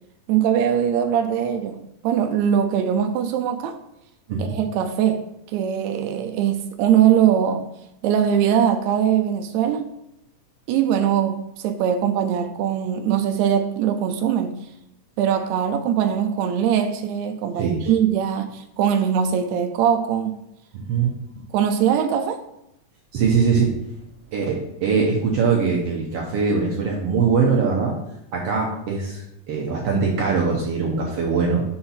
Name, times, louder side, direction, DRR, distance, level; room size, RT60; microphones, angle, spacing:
voice 1, 0.3-3.8 4.4-7.7 8.0-9.9 10.7-14.6 15.2-20.4 21.5-22.4, right 9 dB, 85° right, 1.6 m, -21 dB
voice 2, 20.7-21.1 23.1-23.6 24.3-28.0 28.3-29.2 29.5-31.6, right 5 dB, 65° right, 1.5 m, -22 dB
6.5 x 4.3 x 5.6 m
omnidirectional pair, 3.7 m